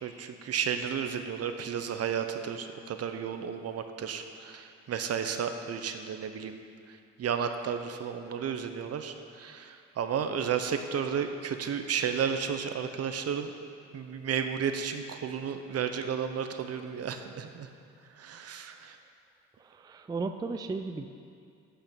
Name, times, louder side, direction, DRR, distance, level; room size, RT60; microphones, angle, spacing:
voice 1, 0.0-6.5 7.2-13.5 13.9-17.7 18.2-19.0, right 7 dB, 55° right, 7 dB, 0.7 m, -33 dB
voice 2, 19.6-21.1, right 3 dB, 15° right, 7 dB, 0.3 m, -35 dB
8.1 x 5.7 x 6.8 m, 2.4 s
cardioid pair, 90°, 30 cm